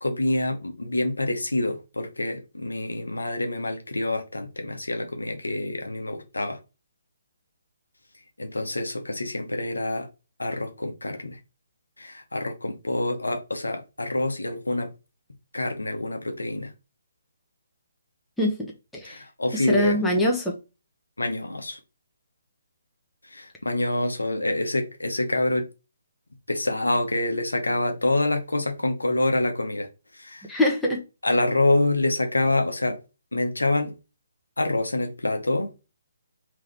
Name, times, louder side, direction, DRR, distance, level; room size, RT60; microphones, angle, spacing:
voice 1, 0.0-6.6 8.4-10.1 10.4-11.4 12.0-14.9 15.5-16.7 19.0-20.0 21.2-21.8 23.3-25.7 26.5-29.9 30.1-30.5 31.2-33.0 33.3-33.9 34.6-35.7, left 2 dB, 85° left, 0.8 m, -26 dB
voice 2, 18.4-19.2 19.5-20.5 30.5-31.0, left 1 dB, 5° left, 0.9 m, -24 dB
3.6 x 2.9 x 3.3 m
figure-of-eight pair, 140°, 0 cm